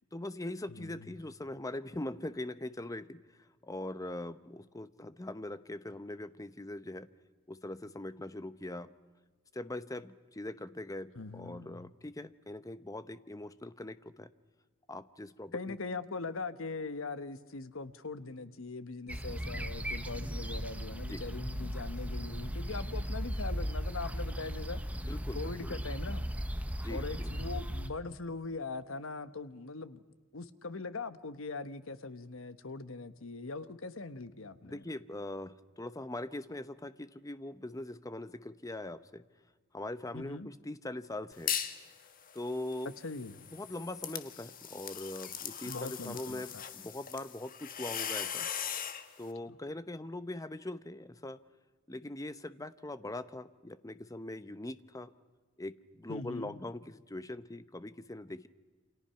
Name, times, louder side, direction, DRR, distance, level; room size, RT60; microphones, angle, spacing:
voice 1, 0.1-7.1 7.5-8.9 9.5-14.3 14.9-15.8 21.1-21.2 25.0-25.7 26.8-27.3 34.6-39.2 39.7-41.6 42.3-42.9 43.5-48.5 49.2-51.4 51.9-55.1 55.6-58.5, left 1 dB, 15° left, 0.8 m, -42 dB
voice 2, 0.7-1.1 11.1-11.9 15.5-24.8 25.3-26.3 26.9-30.0 30.3-34.9 40.1-40.5 43.0-43.4 45.7-46.6 56.1-56.6, left 3 dB, 70° left, 1.2 m, -41 dB
sound 1, 19.1-27.9, equal, 5° right, 1.1 m, -37 dB
sound 2, 41.3-41.8 42.2-49.0, left 8 dB, 45° left, 1.5 m, -39 dB
28.5 x 26.5 x 5.8 m
head